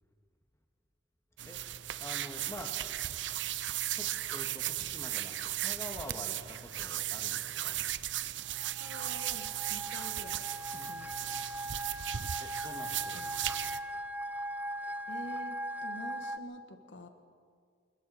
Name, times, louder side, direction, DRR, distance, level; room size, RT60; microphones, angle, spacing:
sound 1, 1.4-13.8, right 13 dB, 80° right, 0.6 m, -36 dB
voice 1, 2.0-2.8 4.0-7.8 10.7-10.9 12.4-13.8, left 1 dB, 15° left, 3 dB, 1.9 m, -47 dB
sound 2, 8.6-16.4, equal, 10° right, 0.5 m, -40 dB
voice 2, 8.8-11.3 15.1-17.1, equal, 85° left, 6 dB, 1.5 m, -47 dB
27.5 x 22.0 x 4.3 m, 2.1 s
head